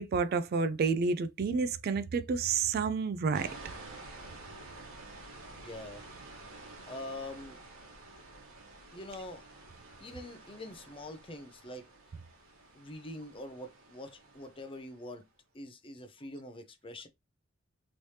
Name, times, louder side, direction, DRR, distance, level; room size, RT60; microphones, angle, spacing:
voice 1, 0.0-3.5, right 5 dB, 45° right, 0.3 m, -29 dB
sound 1, 3.3-15.1, right 2 dB, 65° right, 1.1 m, -50 dB
voice 2, 5.5-6.0 6.9-7.6 8.9-9.4 10.0-11.9 12.7-15.2 15.5-17.1, left 1 dB, 25° left, 0.5 m, -44 dB
3.2 x 3.1 x 2.7 m
head